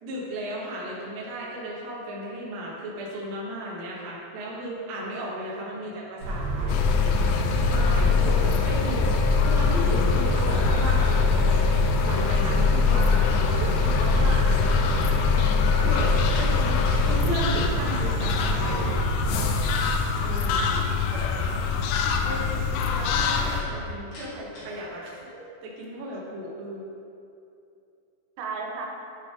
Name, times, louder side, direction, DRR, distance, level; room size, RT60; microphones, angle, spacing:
voice 1, 0.0-6.7 7.7-9.0 9.4-11.7 12.0-15.0 15.8-16.8 17.1-19.1 21.1-21.3 22.2-25.2 25.6-26.9, equal, 75° right, -5 dB, 1.9 m, -34 dB
sound 1, 6.2-19.9, right 1 dB, 60° right, 2.8 m, -28 dB
sound 2, 6.7-23.6, left 5 dB, 85° left, 3.2 m, -23 dB
voice 2, 8.1-8.5 16.3-16.5 20.2-21.2 28.4-28.9, right 4 dB, 90° right, 0 dB, 3.5 m, -36 dB
Slam, 16.3-17.1 17.4-17.9 23.5-24.8, left 1 dB, 60° left, 2.1 m, -46 dB
9.6 x 5.5 x 3.5 m, 2.7 s
omnidirectional pair, 5.9 m